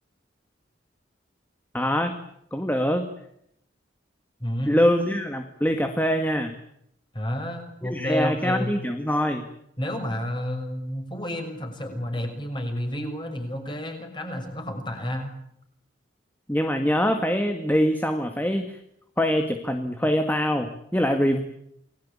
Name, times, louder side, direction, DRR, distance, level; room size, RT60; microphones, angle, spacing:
voice 1, 1.7-2.2 2.5-3.1 4.7-6.5 7.8-9.5 16.5-18.8 19.2-21.4, equal, 10° left, 6 dB, 2.0 m, -24 dB
voice 2, 4.4-4.8 7.1-8.7 9.8-15.4, left 1 dB, 25° left, 5 dB, 6.6 m, -30 dB
29.0 x 21.0 x 8.8 m, 0.75 s
head